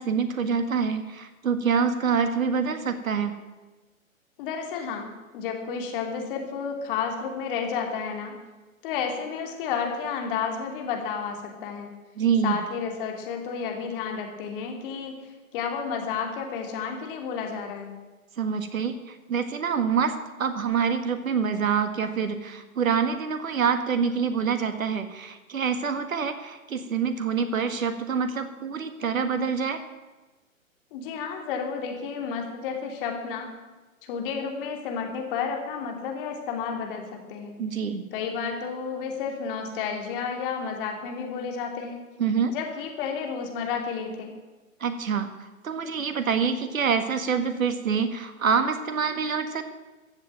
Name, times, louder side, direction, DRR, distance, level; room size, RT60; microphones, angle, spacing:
voice 1, 0.0-3.3 12.2-12.6 18.4-29.8 37.6-38.1 42.2-42.5 44.8-49.6, right 6 dB, 75° right, 9 dB, 1.7 m, -26 dB
voice 2, 4.4-8.4 8.8-11.9 12.4-18.0 30.9-33.5 34.0-37.6 38.1-42.0 42.5-44.3, left 6 dB, 40° left, 3 dB, 3.0 m, -31 dB
14.5 x 7.9 x 9.0 m, 1.2 s
hypercardioid pair, 130°, 41 cm